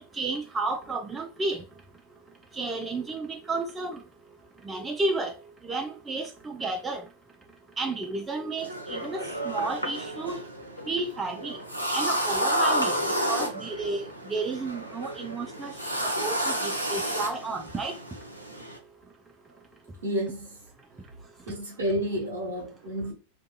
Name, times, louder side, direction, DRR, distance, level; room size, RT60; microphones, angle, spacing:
voice 1, 0.1-1.6 2.6-4.0 4.7-5.3 5.7-7.0 7.8-9.2 9.4-10.4 10.9-11.6 11.9-12.9 13.3-15.7 16.0-17.9, right 3 dB, 15° right, 0.3 m, -32 dB
sound 1, 8.6-18.8, equal, 85° right, 0.5 m, -31 dB
voice 2, 20.0-20.6 21.5-23.1, equal, 70° right, 1.0 m, -30 dB
2.5 x 2.3 x 2.2 m
figure-of-eight pair, 90°, 0 cm